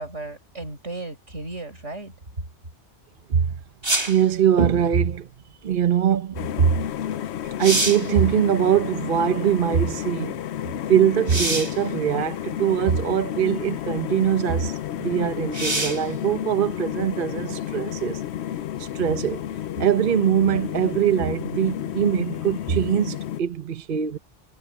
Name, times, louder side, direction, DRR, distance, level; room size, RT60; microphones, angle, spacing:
voice 1, 0.0-2.1, right 2 dB, 90° right, 6.0 m, -35 dB
sound 1, 3.8-4.3 6.9-7.0 7.4-8.1 11.3-11.8 12.8-12.9 15.5-16.1 19.7-19.8, right 2 dB, 20° right, 1.9 m, -25 dB
voice 2, 4.1-5.3 5.6-6.8 7.6-10.4 10.9-18.2 18.8-19.4 19.8-24.2, right 9 dB, 50° right, 1.0 m, -22 dB
sound 2, 6.3-23.4, left 11 dB, 70° left, 0.9 m, -31 dB
omnidirectional pair, 1.2 m